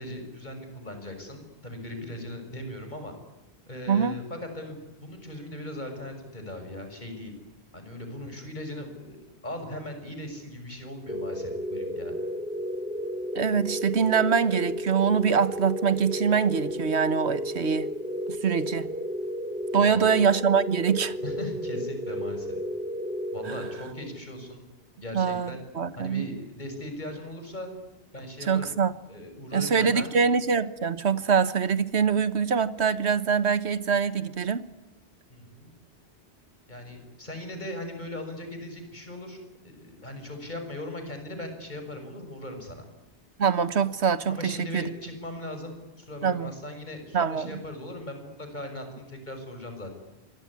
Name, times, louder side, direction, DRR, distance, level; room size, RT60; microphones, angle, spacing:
voice 1, 0.0-3.1 3.7-7.3 7.7-9.2 9.4-12.1 19.7-20.1 21.2-22.5 23.3-24.6 25.0-25.6 26.0-27.7 28.1-28.7 29.1-30.1 35.3-35.7 36.7-39.4 39.6-42.9 44.3-49.9, left 1 dB, 45° left, 6 dB, 6.5 m, -39 dB
voice 2, 3.9-4.2 13.3-17.9 18.4-18.9 19.7-21.2 23.4-23.6 25.1-26.3 28.5-29.0 29.5-34.6 43.4-44.9 46.2-46.5 47.1-47.6, right 6 dB, 80° right, 14 dB, 1.6 m, -24 dB
sound 1, 11.1-24.2, equal, 5° right, 5.0 m, -33 dB
26.5 x 22.5 x 9.9 m, 0.96 s
omnidirectional pair, 1.1 m